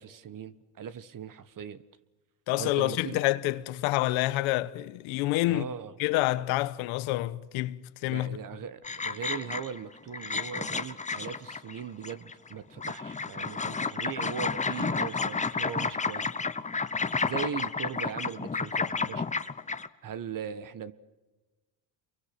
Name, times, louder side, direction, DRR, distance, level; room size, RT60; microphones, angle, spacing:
voice 1, 0.0-1.8 2.6-3.2 5.5-5.9 8.0-16.3 17.2-19.3 20.0-20.9, right 8 dB, 45° right, 1.4 m, -39 dB
voice 2, 2.5-5.7 6.0-8.4, left 17 dB, 85° left, 1.2 m, -28 dB
sound 1, 8.8-9.8 10.1-12.5 12.8-19.9, left 4 dB, 15° left, 1.0 m, -31 dB
29.0 x 23.5 x 6.1 m
cardioid pair, 105°, 47 cm